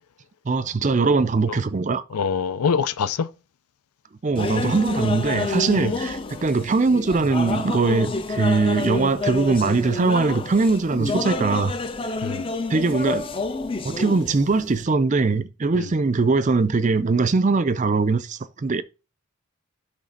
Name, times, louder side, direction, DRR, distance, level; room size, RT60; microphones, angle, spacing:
voice 1, 0.5-2.0 4.2-11.7 12.7-13.3 13.8-18.8, right 4 dB, 35° right, 0.4 m, -21 dB
voice 2, 2.1-3.3 5.8-6.0 12.2-12.5 15.8-15.9, left 6 dB, 90° left, 0.5 m, -24 dB
sound 1, 4.4-14.8, left 3 dB, 25° left, 0.4 m, -29 dB
6.3 x 3.2 x 5.3 m
head